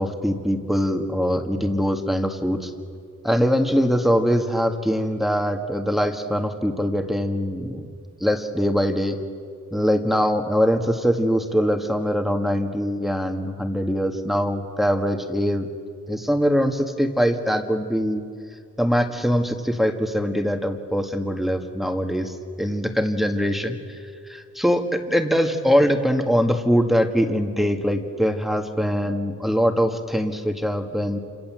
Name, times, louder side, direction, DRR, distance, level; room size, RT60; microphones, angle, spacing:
voice 1, 0.0-2.7 3.2-7.9 8.2-9.2 9.7-15.7 16.1-18.2 18.8-24.0 24.3-31.2, equal, ahead, 4 dB, 1.8 m, -22 dB
28.0 x 27.0 x 7.6 m, 2.2 s
wide cardioid pair, 135°, 33 cm